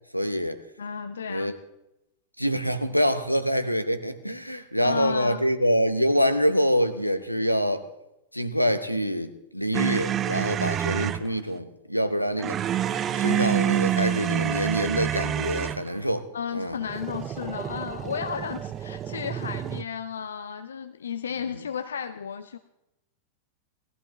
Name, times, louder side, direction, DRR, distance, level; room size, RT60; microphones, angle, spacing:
voice 1, 0.1-0.6 1.3-1.6 2.4-7.9 8.3-12.6 13.1-16.8 21.5-21.6, equal, 90° left, 11 dB, 0.8 m, -25 dB
voice 2, 0.8-1.5 4.4-5.4 16.3-22.6, left 7 dB, 70° left, 10 dB, 0.4 m, -33 dB
sound 1, 9.7-11.3 12.4-15.9 16.8-19.8, right 10 dB, 30° right, 0.5 m, -28 dB
19.5 x 14.0 x 3.2 m, 0.89 s
figure-of-eight pair, 90°, 0 cm